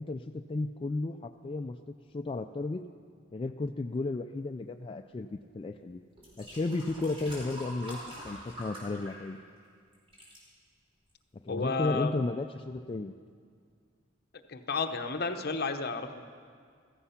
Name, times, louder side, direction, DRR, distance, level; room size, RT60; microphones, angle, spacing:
voice 1, 0.0-1.8 2.1-2.8 3.3-6.0 6.4-9.4 11.4-13.1, left 2 dB, 25° left, 5 dB, 0.3 m, -33 dB
sound 1, 5.5-5.7 6.2-9.7 9.9-10.4 11.1-11.2, equal, 30° right, 5.0 m, -45 dB
voice 2, 11.5-12.1 14.5-16.1, left 4 dB, 55° left, 7 dB, 0.9 m, -31 dB
15.5 x 14.0 x 5.8 m, 2.1 s
head